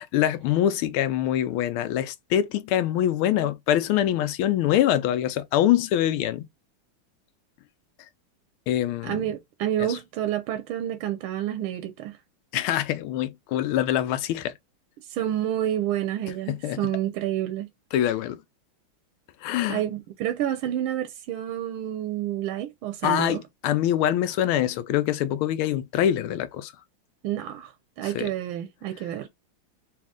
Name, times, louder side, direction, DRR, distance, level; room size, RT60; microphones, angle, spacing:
voice 1, 0.0-6.5 8.7-9.2 9.8-10.0 12.5-14.5 16.5-16.8 17.9-18.4 19.4-19.8 23.0-26.7 28.0-28.3, left 11 dB, 85° left, 1.5 m, -24 dB
voice 2, 9.0-12.2 15.0-17.7 19.7-23.4 27.2-29.3, right 11 dB, 85° right, 1.4 m, -29 dB
4.1 x 2.8 x 3.6 m
omnidirectional pair, 2.3 m